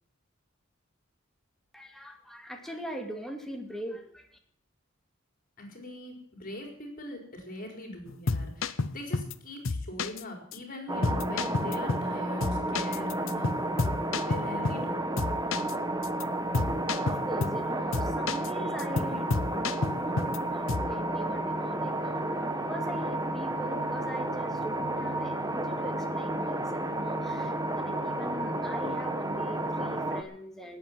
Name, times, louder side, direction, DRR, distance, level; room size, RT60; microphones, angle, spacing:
voice 1, 1.7-4.4 17.0-30.8, equal, ahead, 2 dB, 2.3 m, -41 dB
voice 2, 5.6-13.7 14.2-15.0, left 1 dB, 45° left, 2 dB, 4.6 m, -42 dB
sound 1, 8.1-9.3 9.6-10.2 10.5-10.6 11.0-12.1 12.4-14.9 15.2-15.7 16.0-16.2 16.5-17.6 17.9-18.5 18.8-20.4 20.7-21.0, left 3 dB, 75° left, 0.8 m, -31 dB
sound 2, 10.9-30.2, right 1 dB, 20° right, 1.2 m, -31 dB
18.5 x 8.6 x 7.6 m, 0.64 s
head